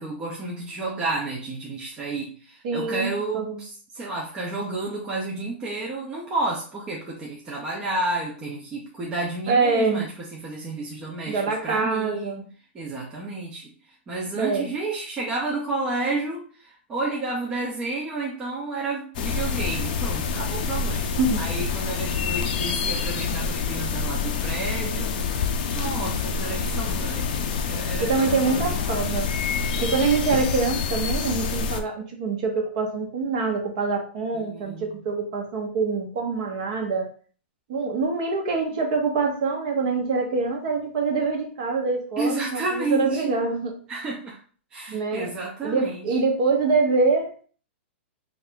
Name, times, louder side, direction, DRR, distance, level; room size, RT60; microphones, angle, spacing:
voice 1, 0.0-12.4 12.7-13.7 14.1-25.2 25.7-29.2 34.3-35.0 42.2-43.3 43.9-44.4 44.7-46.1, right 2 dB, 15° right, -4 dB, 0.5 m, -31 dB
voice 2, 2.6-3.1 3.3-3.6 9.5-10.0 11.3-12.5 14.3-14.7 21.2-21.4 28.0-29.3 29.8-37.1 37.7-43.7 44.9-45.3 45.6-47.4, right 4 dB, 40° right, 2 dB, 0.8 m, -25 dB
sound 1, 19.1-31.8, left 5 dB, 45° left, 0.4 m, -27 dB
3.2 x 2.4 x 3.6 m, 0.42 s
hypercardioid pair, 170°, 6 cm